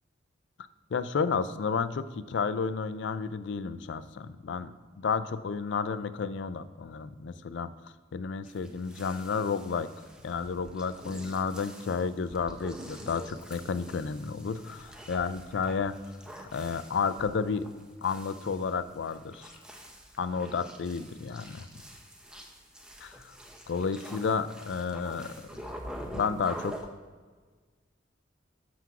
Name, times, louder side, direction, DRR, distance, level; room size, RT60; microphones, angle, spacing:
voice 1, 0.9-7.7 8.1-9.9 10.2-16.0 16.5-17.7 18.0-19.5 20.2-21.7 23.0-23.4 23.7-25.3 26.1-26.8, left 5 dB, 70° left, 14 dB, 0.4 m, -31 dB
sound 1, 8.5-26.8, equal, 5° right, 0.7 m, -46 dB
6.1 x 5.8 x 5.8 m, 1.5 s
head